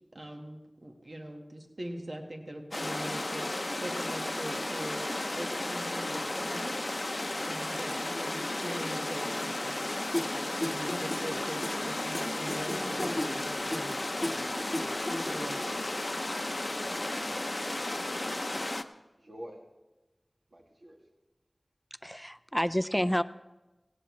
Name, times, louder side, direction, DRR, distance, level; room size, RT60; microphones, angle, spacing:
voice 1, 0.1-5.1 5.3-6.7 7.4-9.8 10.6-14.0 15.3-15.6, right 1 dB, 65° right, 3 dB, 1.6 m, -42 dB
sound 1, 2.7-18.8, left 2 dB, 45° left, 0.7 m, -34 dB
sound 2, 10.1-15.7, left 1 dB, 20° left, 1.7 m, -36 dB
voice 2, 16.4-18.4 19.2-19.6 20.5-21.0, equal, 90° right, -1 dB, 2.2 m, -49 dB
voice 3, 22.0-23.2, equal, 5° left, 13 dB, 0.4 m, -29 dB
17.5 x 16.5 x 3.2 m, 1.0 s
wide cardioid pair, 40°, 0 cm